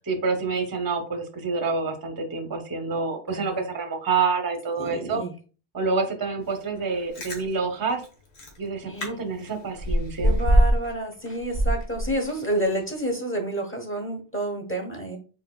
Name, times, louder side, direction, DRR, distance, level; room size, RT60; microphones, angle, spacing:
voice 1, 0.1-5.2 5.7-8.0 8.6-10.4, right 4 dB, 25° right, 6 dB, 0.7 m, -27 dB
voice 2, 3.3-3.6 4.8-5.3 8.8-9.2 10.2-15.2, right 1 dB, 15° left, 1 dB, 0.9 m, -29 dB
Chewing mastication, 6.9-7.4 8.0-8.1 8.4-8.6 9.0-9.1 9.4-10.9 11.3-12.5 12.9-13.0, right 1 dB, 85° left, 1.6 m, -22 dB
4.5 x 4.5 x 2.3 m, 0.37 s
omnidirectional pair, 1.1 m